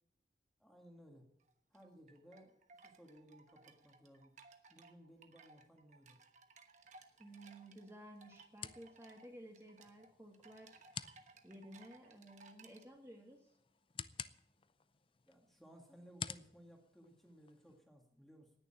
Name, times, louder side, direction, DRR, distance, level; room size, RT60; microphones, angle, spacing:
voice 1, 0.6-1.3 1.7-4.3 4.7-6.2 15.3-18.5, equal, ahead, 2 dB, 1.9 m, -60 dB
sound 1, 1.4-12.8, right 4 dB, 45° right, 1.2 m, -62 dB
sound 2, 6.8-17.8, left 7 dB, 30° left, 0.5 m, -53 dB
voice 2, 7.2-10.8 11.4-13.5, right 1 dB, 15° right, 1 dB, 1.9 m, -55 dB
18.5 x 6.8 x 8.9 m, 0.73 s
head